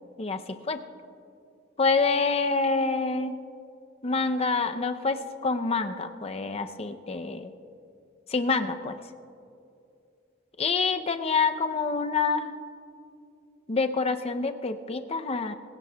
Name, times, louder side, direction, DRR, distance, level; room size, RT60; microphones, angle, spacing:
voice 1, 0.2-0.8 1.8-3.3 4.0-7.5 8.3-9.0 10.6-12.6 13.7-15.5, left 4 dB, 30° left, 8 dB, 0.6 m, -27 dB
22.0 x 16.5 x 2.3 m, 2.6 s
head